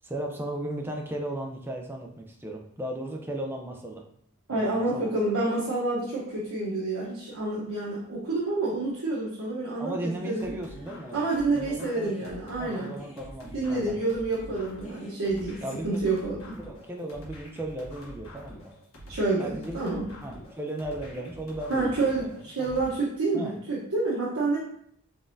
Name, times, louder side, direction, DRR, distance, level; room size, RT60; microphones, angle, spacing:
voice 1, 0.0-4.0 4.5-5.1 9.8-11.2 11.5-12.3 12.6-14.0 15.6-16.1 16.5-18.7 19.4-19.8 20.1-22.3 22.6-22.8 23.3-23.6, right 1 dB, 10° right, 1 dB, 0.4 m, -36 dB
voice 2, 4.5-10.5 11.1-12.9 13.5-16.6 19.1-20.1 21.7-24.6, right 2 dB, 85° right, -6 dB, 0.9 m, -28 dB
sound 1, 10.4-22.9, equal, 70° left, 1.3 m, -45 dB
4.0 x 3.5 x 2.6 m, 0.68 s
head